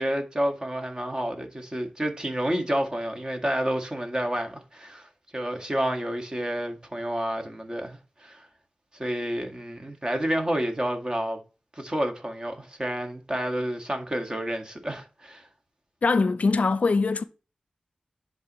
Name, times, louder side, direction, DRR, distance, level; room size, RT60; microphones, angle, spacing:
voice 1, 0.0-8.5 8.9-11.4 11.7-15.5, right 1 dB, 30° right, 1.8 m, -29 dB
voice 2, 16.0-17.2, left 4 dB, 65° left, 0.5 m, -22 dB
10.5 x 4.2 x 3.1 m
cardioid pair, 50°, 3 cm